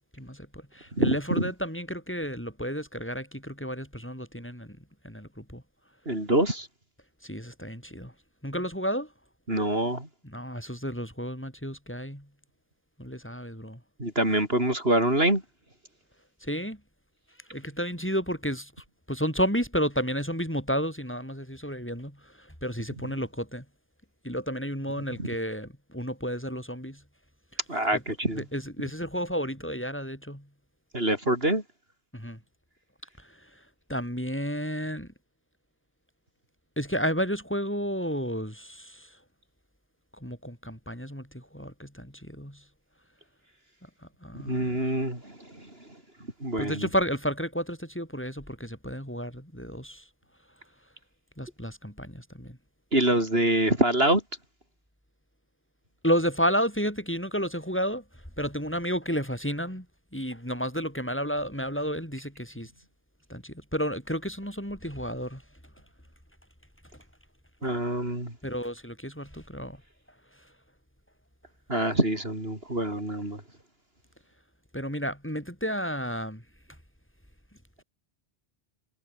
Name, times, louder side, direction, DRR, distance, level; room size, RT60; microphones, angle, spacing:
voice 1, 0.2-4.8 5.0-5.6 7.2-8.1 8.4-9.1 10.2-12.3 13.0-13.8 16.4-16.8 17.5-18.7 19.1-23.6 24.2-27.0 27.9-28.0 28.3-30.4 32.1-32.4 33.9-35.1 36.8-39.1 40.2-42.6 44.2-44.7 46.6-50.0 51.4-52.6 56.0-58.0 58.4-59.9 60.1-62.7 63.3-65.4 67.6-67.8 68.4-69.8 74.7-76.4, equal, 10° left, 7.2 m, -31 dB
voice 2, 6.1-6.7 9.5-10.1 14.0-15.4 25.2-25.3 27.7-28.4 30.9-31.6 44.5-45.7 46.4-46.9 52.9-54.2 67.6-68.3 71.7-73.4, right 1 dB, 60° right, 7.4 m, -25 dB
omnidirectional pair, 1.1 m